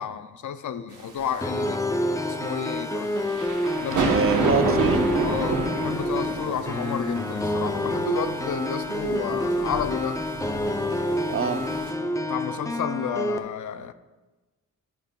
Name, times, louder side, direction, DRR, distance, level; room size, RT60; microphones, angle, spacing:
voice 1, 0.0-1.8 2.3-3.1 3.8-4.5 5.2-10.2 12.3-13.9, left 8 dB, 70° left, 11 dB, 0.5 m, -31 dB
sound 1, 1.0-11.9, right 3 dB, 75° right, 1.0 m, -30 dB
sound 2, 1.4-13.4, left 1 dB, 10° left, 0.4 m, -28 dB
voice 2, 4.0-5.1 11.3-11.6, right 6 dB, 45° right, 10 dB, 0.5 m, -25 dB
11.0 x 5.2 x 2.2 m, 1.2 s
cardioid pair, 80°, 31 cm